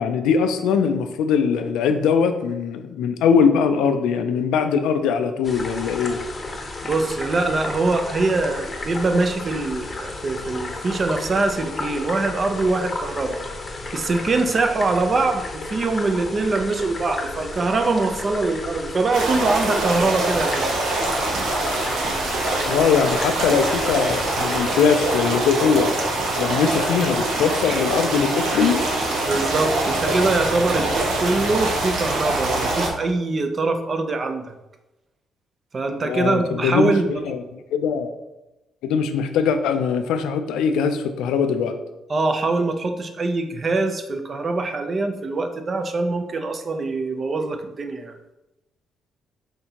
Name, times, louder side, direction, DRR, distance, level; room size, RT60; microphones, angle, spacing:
voice 1, 0.0-6.2 22.7-25.9 26.4-28.8 36.0-36.9 37.2-37.4 37.7-38.1 38.8-41.7, left 6 dB, 90° left, 8 dB, 0.4 m, -21 dB
sound 1, 5.4-24.8, left 2 dB, 30° left, 0.7 m, -33 dB
voice 2, 6.8-13.4 13.9-20.7 29.2-34.5 35.7-37.2 42.1-48.2, right 3 dB, 40° right, 6 dB, 0.5 m, -23 dB
sound 2, 19.1-32.9, right 2 dB, 80° right, 0.9 m, -24 dB
5.8 x 2.7 x 2.8 m, 0.98 s
cardioid pair, 90°, 0 cm